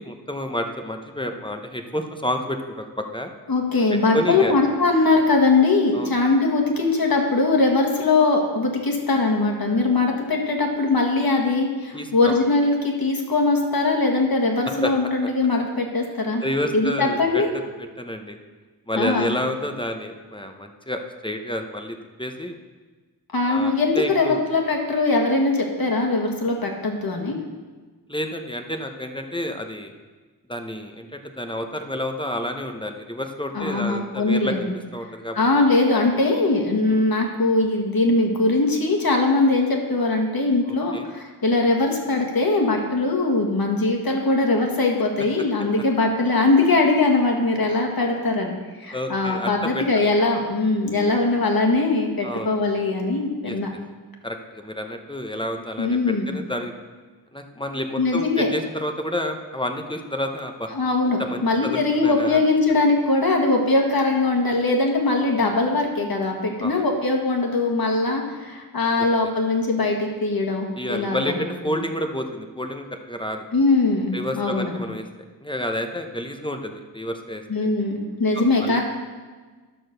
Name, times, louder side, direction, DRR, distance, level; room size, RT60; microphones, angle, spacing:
voice 1, 0.0-3.3 4.1-4.5 5.9-6.1 11.9-12.3 14.6-14.9 16.4-17.4 17.8-18.4 18.9-22.6 23.5-24.4 28.1-29.9 30.5-35.4 36.9-37.0 40.7-41.1 48.9-50.2 52.2-52.5 53.4-53.6 54.2-56.8 57.3-60.7 61.2-62.4 66.6-66.8 69.2-69.3 70.8-73.4 74.1-75.1 75.4-77.4 78.3-78.8, left 1 dB, 10° left, 5 dB, 0.8 m, -30 dB
voice 2, 3.5-16.4 16.7-17.5 19.0-19.3 23.3-27.4 33.5-34.7 35.3-48.5 48.8-53.7 55.8-56.4 58.0-58.5 60.7-71.5 73.5-74.7 77.5-78.8, left 3 dB, 60° left, 1 dB, 1.8 m, -21 dB
11.0 x 6.3 x 6.6 m, 1.4 s
wide cardioid pair, 100°, 40 cm